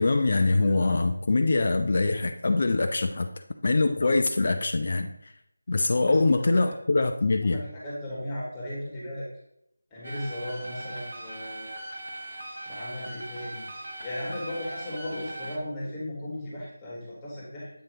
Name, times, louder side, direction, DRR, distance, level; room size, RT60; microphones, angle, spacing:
voice 1, 0.0-3.3 3.6-5.3 5.7-7.6, left 3 dB, 45° left, 5 dB, 0.4 m, -23 dB
voice 2, 7.4-9.2 9.9-11.7 12.6-13.7 14.0-17.7, left 1 dB, 15° left, -7 dB, 1.6 m, -36 dB
sound 1, 10.0-15.6, right 1 dB, 55° right, 1.0 m, -39 dB
7.9 x 2.9 x 4.8 m, 0.79 s
figure-of-eight pair, 165°, 0 cm